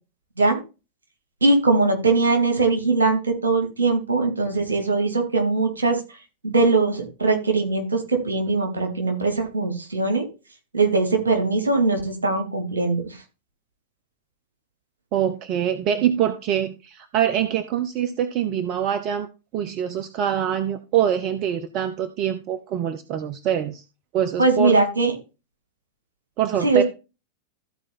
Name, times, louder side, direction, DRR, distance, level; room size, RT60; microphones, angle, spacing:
voice 1, 1.4-6.0 6.4-10.3 10.7-13.1 24.4-25.1 26.6-26.8, right 3 dB, 75° right, 3 dB, 3.3 m, -21 dB
voice 2, 15.1-19.3 19.5-23.8 24.1-24.8 26.4-26.8, right 9 dB, 40° right, 10 dB, 1.0 m, -24 dB
14.0 x 4.9 x 4.3 m, 0.29 s
figure-of-eight pair, 90°, 0 cm